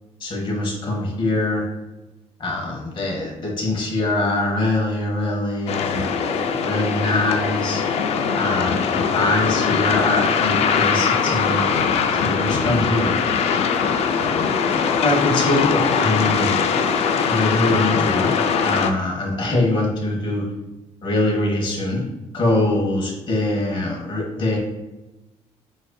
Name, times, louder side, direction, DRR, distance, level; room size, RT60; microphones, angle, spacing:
voice 1, 0.2-1.7 2.4-6.1 6.6-7.8 8.3-11.7 12.2-13.1 15.0-16.5 17.3-18.3 18.6-20.5 21.0-22.1 22.3-24.6, left 2 dB, 45° left, -1 dB, 1.3 m, -23 dB
sound 1, 5.7-18.9, left 6 dB, 65° left, 0.4 m, -21 dB
7.7 x 2.6 x 2.3 m, 1.0 s
cardioid pair, 120°, 12 cm